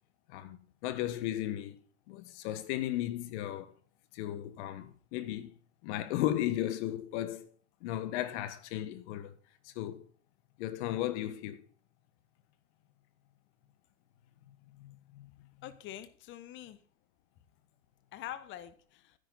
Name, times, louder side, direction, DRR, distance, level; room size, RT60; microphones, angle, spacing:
voice 1, 0.3-1.8 2.1-3.7 4.1-5.5 5.8-7.5 7.8-9.3 9.6-10.1 10.6-11.6 14.7-15.3, left 13 dB, 50° left, 1.7 m, -35 dB
voice 2, 15.6-16.8 18.1-19.1, left 12 dB, 25° left, 1.0 m, -45 dB
12.5 x 10.5 x 4.1 m
hypercardioid pair, 135°, 46 cm